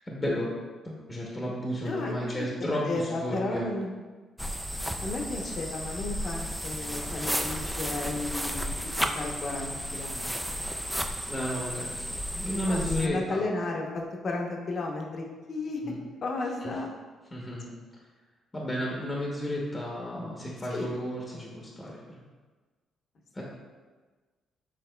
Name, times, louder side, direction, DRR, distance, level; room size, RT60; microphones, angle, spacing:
voice 1, 0.1-0.5 0.8-3.7 11.3-13.4 15.8-16.0 16.6-16.7 17.3-17.7 18.5-22.2 23.3-23.4, equal, 20° left, -3 dB, 0.8 m, -33 dB
voice 2, 1.8-2.5 2.9-3.9 5.0-10.6 12.7-15.8 16.2-16.9 20.7-21.0, left 2 dB, 50° left, 1 dB, 0.8 m, -34 dB
sound 1, 4.4-13.1, equal, 5° right, 0.3 m, -33 dB
6.5 x 3.4 x 2.2 m, 1.3 s
cardioid pair, 90°, 0 cm